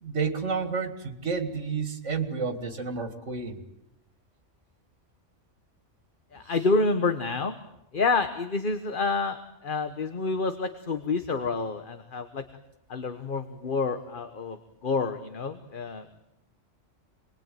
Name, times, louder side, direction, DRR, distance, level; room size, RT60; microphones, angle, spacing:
voice 1, 0.0-3.6, right 5 dB, 80° right, 6 dB, 2.4 m, -30 dB
voice 2, 6.3-7.6 7.9-12.4 12.9-14.6 14.8-16.2, left 3 dB, 45° left, 9 dB, 1.4 m, -28 dB
27.5 x 21.5 x 9.2 m, 0.83 s
omnidirectional pair, 1.2 m